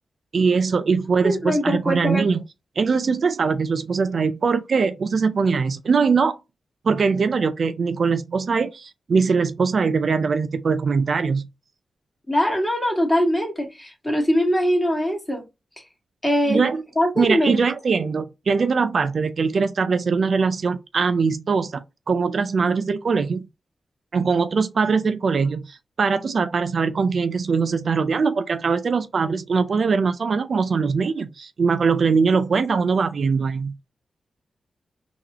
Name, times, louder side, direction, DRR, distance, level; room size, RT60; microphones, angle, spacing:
voice 1, 0.3-2.4 2.8-6.4 6.8-11.4 16.5-16.8 17.2-23.5 24.1-33.7, right 5 dB, 60° right, 0.3 m, -21 dB
voice 2, 1.2-2.2 12.3-15.4 16.2-16.6 16.9-17.6, equal, 15° left, 1.8 m, -22 dB
3.8 x 2.9 x 2.9 m
cardioid pair, 65°, 0 cm